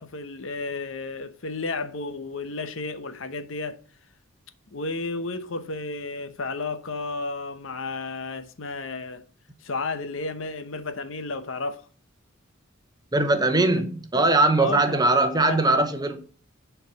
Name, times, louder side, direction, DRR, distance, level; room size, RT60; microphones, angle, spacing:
voice 1, 0.0-3.8 4.7-9.2 9.6-11.9 13.7-13.8 14.6-15.0 15.4-15.6, left 3 dB, 65° left, 1.0 m, -32 dB
voice 2, 13.1-16.2, right 2 dB, 20° right, 0.9 m, -21 dB
10.0 x 4.7 x 4.1 m
head